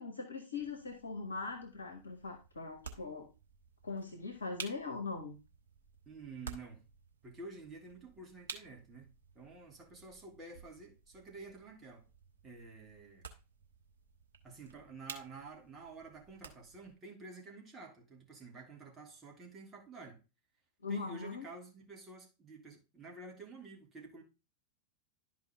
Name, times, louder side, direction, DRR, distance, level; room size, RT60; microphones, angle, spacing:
voice 1, 0.0-3.3 3.8-5.4 20.8-21.4, left 4 dB, 70° left, 1.0 m, -41 dB
sound 1, 0.5-16.9, right 4 dB, 65° right, 1.3 m, -53 dB
voice 2, 6.1-6.8 7.2-9.1 9.3-12.1 12.4-13.3 14.4-20.2 20.9-24.2, right 3 dB, 20° right, 2.3 m, -50 dB
11.5 x 4.8 x 3.5 m
figure-of-eight pair, 90°, 0 cm